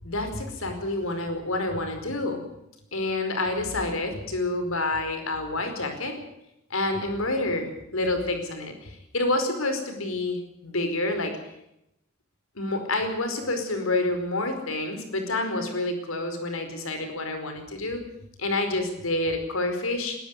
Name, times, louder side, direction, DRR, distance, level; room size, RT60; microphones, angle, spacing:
voice 1, 0.0-2.4 2.9-6.2 6.7-11.3 12.6-18.0 18.4-20.2, left 2 dB, 80° left, 6 dB, 4.9 m, -28 dB
22.0 x 13.0 x 9.8 m, 0.82 s
head